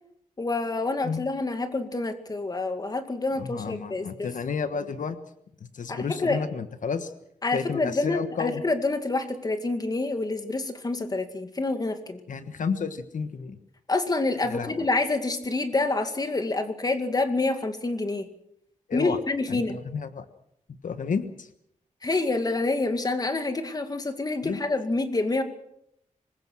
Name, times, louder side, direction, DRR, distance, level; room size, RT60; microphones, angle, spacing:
voice 1, 0.4-4.3 5.9-6.4 7.4-12.2 13.9-18.3 18.9-19.8 22.0-25.4, left 2 dB, 30° left, 8 dB, 2.2 m, -27 dB
voice 2, 3.4-5.2 5.6-7.1 7.5-8.6 12.3-13.6 14.5-14.8 18.9-19.2 19.5-20.2 20.8-21.5 24.4-24.6, left 5 dB, 80° left, 10 dB, 1.4 m, -31 dB
25.0 x 21.0 x 6.3 m, 0.74 s
wide cardioid pair, 140°, 13 cm